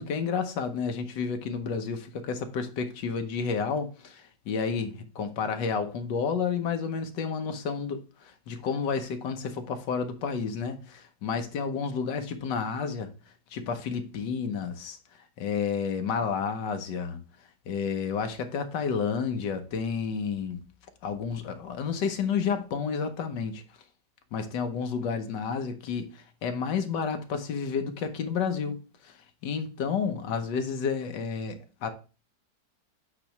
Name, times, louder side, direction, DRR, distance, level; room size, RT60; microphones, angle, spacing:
voice 1, 0.0-13.1 13.5-15.0 15.4-17.2 17.7-20.6 21.0-23.6 24.3-29.2 29.4-31.9, left 6 dB, 85° left, 1.6 m, -31 dB
8.4 x 3.0 x 5.8 m
omnidirectional pair, 1.9 m